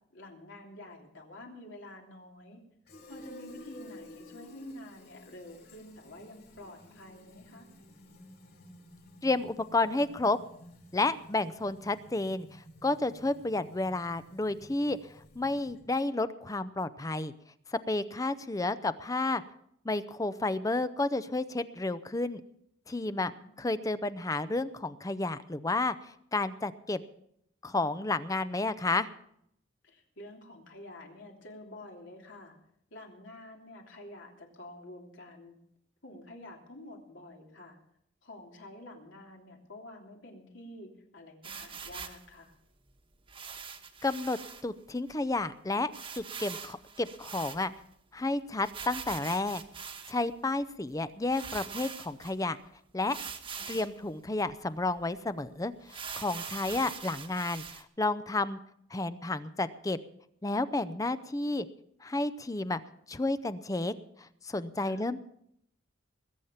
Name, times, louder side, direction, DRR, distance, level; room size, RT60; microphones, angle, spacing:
voice 1, 0.1-2.6 3.1-7.7 23.1-23.7 29.8-32.5 32.9-35.6 36.0-37.8 38.2-42.5 53.5-54.1 64.8-65.1, left 1 dB, 75° left, 0 dB, 3.2 m, -49 dB
Fill (with liquid), 2.9-16.0, left 1 dB, 60° left, 5.5 m, -53 dB
voice 2, 9.2-10.4 10.9-12.5 12.8-15.0 15.4-17.3 17.9-19.4 19.8-22.4 22.9-23.3 23.6-25.9 26.3-27.0 27.6-29.1 44.0-44.4 44.6-47.7 48.1-52.6 52.9-53.2 53.7-58.6 58.9-60.0 60.4-61.7 62.0-62.8 63.1-63.9 64.4-65.2, left 2 dB, 20° left, 13 dB, 0.6 m, -31 dB
sound 1, 41.4-42.2 43.3-44.6 45.1-45.2 45.4-45.5 45.9-47.9 48.6-50.3 50.9-51.0 51.3-52.3 53.1-54.0 54.5-54.6 55.0-55.1 55.9-57.8, right 6 dB, 30° right, 1.2 m, -42 dB
21.0 x 9.0 x 5.7 m, 0.72 s
head